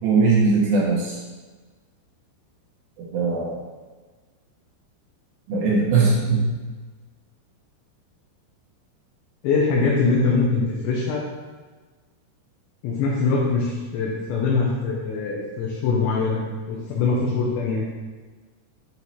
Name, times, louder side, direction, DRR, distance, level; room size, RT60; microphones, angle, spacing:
voice 1, 0.0-1.2 3.1-3.6 5.5-6.4, right 4 dB, 85° right, -5 dB, 2.0 m, -19 dB
voice 2, 9.4-11.3 12.8-16.4 16.7-17.8, left 4 dB, 75° left, -4 dB, 3.0 m, -22 dB
8.3 x 3.1 x 4.2 m, 1.4 s
omnidirectional pair, 5.6 m